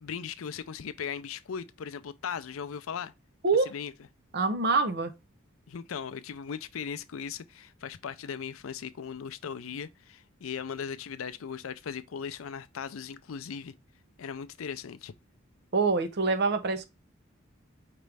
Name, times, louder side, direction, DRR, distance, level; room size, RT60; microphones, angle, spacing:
voice 1, 0.0-3.1 3.7-3.9 5.7-13.7 14.2-15.1, left 7 dB, 85° left, 0.5 m, -38 dB
voice 2, 4.3-5.1 15.7-16.8, right 3 dB, 55° right, 0.7 m, -25 dB
5.1 x 3.2 x 3.2 m
head